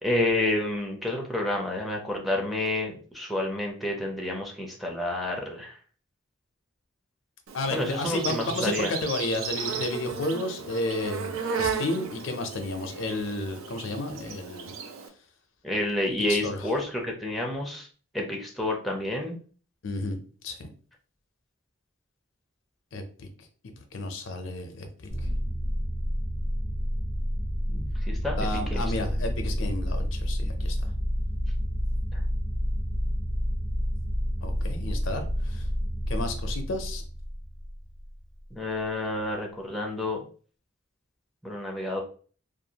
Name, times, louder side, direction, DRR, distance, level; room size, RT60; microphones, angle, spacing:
voice 1, 0.0-5.7 7.7-8.9 15.6-17.9 18.1-19.4 27.7-29.2 32.1-32.2 38.5-40.2 41.4-42.0, left 1 dB, ahead, -1 dB, 0.4 m, -29 dB
voice 2, 7.5-14.7 16.3-16.8 19.8-20.2 20.4-20.7 22.9-23.3 23.9-25.3 28.4-30.9 34.4-35.7 36.1-37.0, left 2 dB, 70° left, 6 dB, 0.5 m, -32 dB
Insect, 7.5-15.1, right 6 dB, 85° right, 0.4 m, -35 dB
sound 1, 25.1-38.0, equal, 60° right, 1.3 m, -29 dB
2.5 x 2.2 x 2.8 m, 0.41 s
head